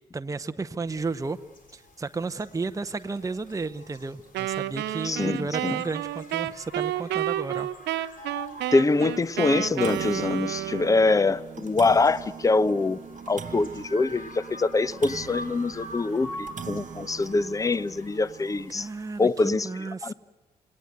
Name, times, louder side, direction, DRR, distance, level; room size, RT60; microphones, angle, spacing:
voice 1, 0.1-1.4 1.7-7.7 18.7-20.1, right 3 dB, 15° right, 0.8 m, -33 dB
sound 1, 0.9-19.4, left 1 dB, 45° left, 4.6 m, -46 dB
sound 2, 3.5-3.7 4.1-4.2 4.6-4.7 5.8-5.9 6.4-6.5 6.9-7.0 7.5-7.6 8.7-8.9 9.2-9.3 9.5-18.7, right 7 dB, 40° right, 1.0 m, -42 dB
Wind instrument woodwind instrument, 4.3-11.2, right 14 dB, 60° right, 0.7 m, -31 dB
voice 2, 5.0-5.8 8.7-13.0 13.3-18.9 19.2-19.7 20.0-20.1, left 3 dB, 15° left, 0.7 m, -24 dB
27.5 x 19.0 x 7.9 m
figure-of-eight pair, 40°, 20 cm